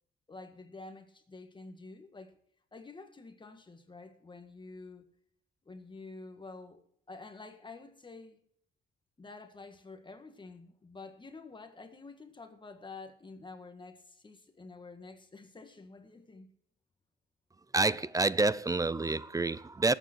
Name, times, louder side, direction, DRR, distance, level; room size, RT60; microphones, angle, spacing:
voice 1, 0.3-2.4 2.7-5.1 5.7-6.8 7.1-8.4 9.2-16.5, left 3 dB, 25° left, 1.8 m, -49 dB
voice 2, 17.7-19.9, right 3 dB, 15° right, 0.6 m, -28 dB
19.0 x 9.0 x 4.5 m
cardioid pair, 90°, 20 cm